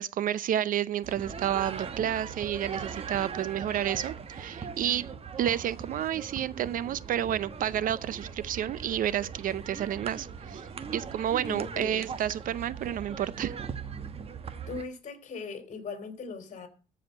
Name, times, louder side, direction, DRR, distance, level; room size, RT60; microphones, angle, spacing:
voice 1, 0.0-5.1 5.4-10.6 10.9-13.6, right 10 dB, 55° right, 0.5 m, -30 dB
sound 1, 1.0-14.8, right 6 dB, 35° right, 1.1 m, -40 dB
voice 2, 11.5-12.0 14.7-16.7, left 4 dB, 45° left, 3.2 m, -39 dB
14.0 x 4.9 x 7.9 m
cardioid pair, 110°, 17 cm